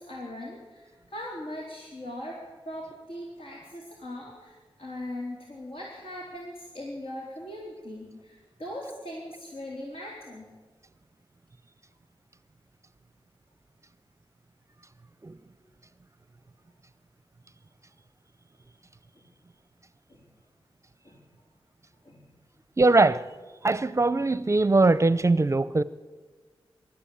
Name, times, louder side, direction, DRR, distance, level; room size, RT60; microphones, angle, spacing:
voice 1, 0.0-2.4 2.7-10.5 19.2-19.3 20.1-20.2 21.0-21.3 22.0-22.4, left 1 dB, 75° left, -2 dB, 3.9 m, -40 dB
voice 2, 22.8-23.3 23.6-25.8, right 3 dB, 30° right, 16 dB, 0.6 m, -21 dB
24.5 x 13.0 x 8.7 m, 1.3 s
wide cardioid pair, 95°, 10 cm